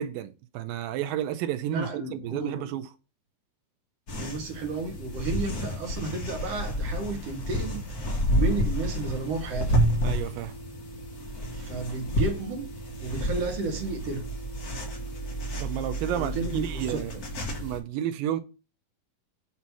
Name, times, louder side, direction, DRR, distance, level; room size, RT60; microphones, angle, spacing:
voice 1, 0.0-2.9 10.0-10.5 15.5-17.1 17.6-18.4, right 11 dB, 85° right, 2.5 m, -31 dB
voice 2, 1.7-2.6 4.2-7.8 8.3-9.8 11.5-12.7 13.0-14.3 16.1-17.2, right 4 dB, 60° right, 1.8 m, -32 dB
sound 1, 4.1-17.8, equal, 45° left, 1.2 m, -30 dB
7.3 x 2.8 x 5.9 m
omnidirectional pair, 4.0 m